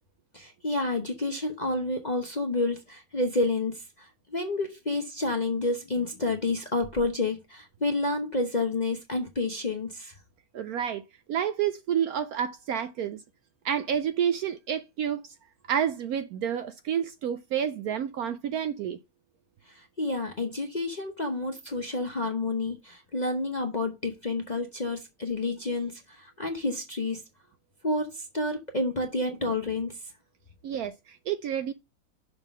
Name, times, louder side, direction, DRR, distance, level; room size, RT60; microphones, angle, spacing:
voice 1, 0.3-10.1 19.7-27.2 27.8-30.0, left 2 dB, 35° left, 0.7 m, -29 dB
voice 2, 10.5-13.2 13.6-15.3 15.7-19.0 30.6-31.7, right 9 dB, 70° right, 0.9 m, -29 dB
6.5 x 3.6 x 6.0 m
omnidirectional pair, 1.9 m